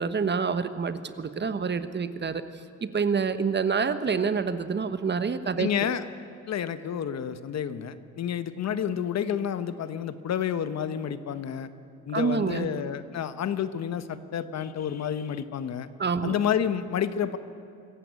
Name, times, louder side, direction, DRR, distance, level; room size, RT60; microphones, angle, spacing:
voice 1, 0.0-2.4 2.8-5.7 12.1-12.7 16.0-16.3, right 5 dB, 35° right, 11 dB, 1.2 m, -27 dB
voice 2, 5.6-6.0 6.5-11.7 12.1-15.9 16.2-17.4, left 8 dB, 60° left, 12 dB, 1.1 m, -29 dB
25.0 x 15.0 x 8.3 m, 2.5 s
cardioid pair, 90°, 30 cm